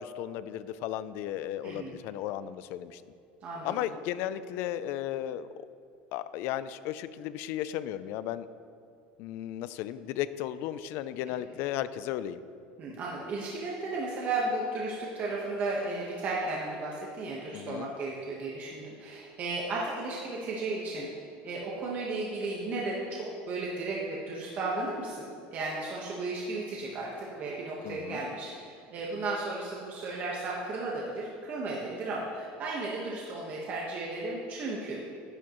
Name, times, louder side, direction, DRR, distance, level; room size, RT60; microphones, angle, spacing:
voice 1, 0.0-3.0 3.6-5.5 6.1-8.5 9.2-12.4 17.5-17.9 27.8-28.2, left 12 dB, 60° left, 14 dB, 0.4 m, -35 dB
voice 2, 1.6-2.0 3.4-3.9 11.3-11.4 12.8-21.1 21.4-35.0, right 2 dB, 40° right, -4 dB, 1.3 m, -34 dB
11.5 x 10.5 x 3.1 m, 2.4 s
cardioid pair, 145°, 5 cm